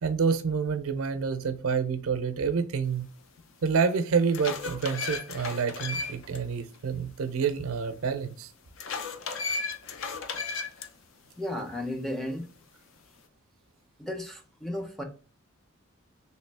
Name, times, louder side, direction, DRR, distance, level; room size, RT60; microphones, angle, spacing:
voice 1, 0.0-3.1 3.6-8.5, right 5 dB, 80° right, 0.5 m, -28 dB
sound 1, 3.4-3.5 4.0-6.4 6.7-6.8 8.8-10.9, left 4 dB, 65° left, 0.5 m, -34 dB
voice 2, 11.4-12.5 14.0-15.0, left 1 dB, ahead, 0.5 m, -34 dB
3.1 x 3.0 x 3.3 m
head